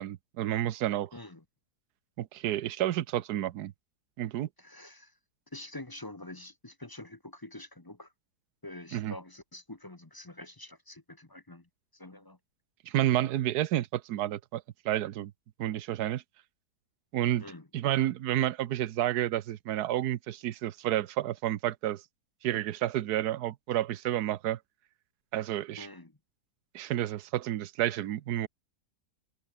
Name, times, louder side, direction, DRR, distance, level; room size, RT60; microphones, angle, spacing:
voice 1, 0.0-1.1 2.2-3.7 4.2-4.5 8.9-9.1 12.9-15.3 15.6-16.2 17.1-17.4 17.7-22.0 22.4-24.6 25.3-25.9 26.7-28.5, right 13 dB, 70° right, 1.3 m, -30 dB
voice 2, 1.1-1.4 4.6-5.2 5.5-8.1 8.6-12.4 17.4-17.7 25.8-26.2, left 1 dB, 15° left, 0.9 m, -46 dB
omnidirectional pair, 1.8 m